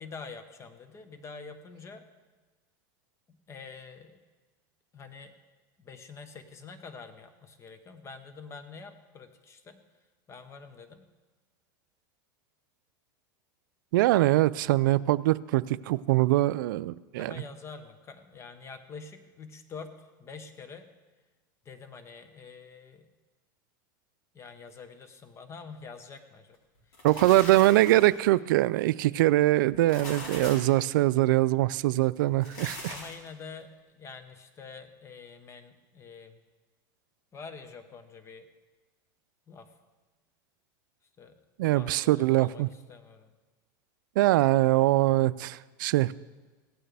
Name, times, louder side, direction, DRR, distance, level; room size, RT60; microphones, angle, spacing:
voice 1, 0.0-2.0 3.3-4.2 4.9-5.3 5.8-9.8 10.3-11.1 17.2-20.9 21.6-23.1 24.3-26.6 26.8-28.0 28.8-28.9 32.9-36.4 37.3-38.5 39.5-39.7 41.2-41.4 41.7-43.3, left 5 dB, 25° left, 9 dB, 1.1 m, -46 dB
voice 2, 13.9-17.4 27.0-32.9 41.6-42.7 44.2-46.1, right 17 dB, 75° right, 17 dB, 0.4 m, -23 dB
sound 1, 26.8-28.2 29.7-30.8 32.3-33.3, left 1 dB, 60° left, 4.4 m, -41 dB
17.0 x 8.9 x 3.4 m, 1.3 s
supercardioid pair, 125°, 11 cm